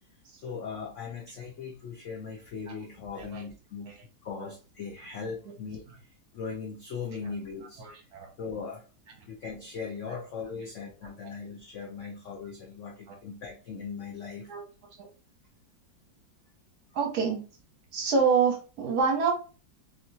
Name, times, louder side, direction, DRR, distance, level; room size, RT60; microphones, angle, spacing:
voice 1, 0.4-4.0 4.2-5.8 6.3-7.8 8.4-8.8 9.3-14.5, left 5 dB, 85° left, 0 dB, 0.6 m, -39 dB
voice 2, 7.8-8.3 13.1-13.2 14.5-14.6 15.0-15.1 16.9-17.4 17.9-19.3, right 5 dB, 60° right, 1 dB, 1.3 m, -27 dB
3.5 x 2.8 x 2.7 m, 0.35 s
omnidirectional pair, 2.0 m